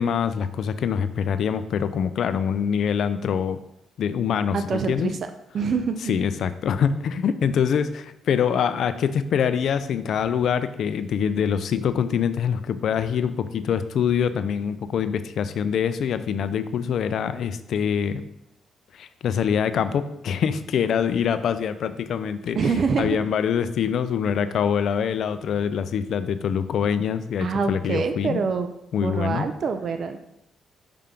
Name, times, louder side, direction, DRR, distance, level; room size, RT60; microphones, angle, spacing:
voice 1, 0.0-3.6 4.0-5.1 6.1-18.2 18.9-22.6 23.0-28.4 28.9-29.5, left 7 dB, 65° left, 12 dB, 0.4 m, -24 dB
voice 2, 4.5-5.2 5.5-6.2 22.5-23.2 27.4-28.7 29.0-30.2, right 5 dB, 55° right, 8 dB, 0.4 m, -25 dB
5.6 x 3.6 x 5.1 m, 0.82 s
cardioid pair, 90°, 0 cm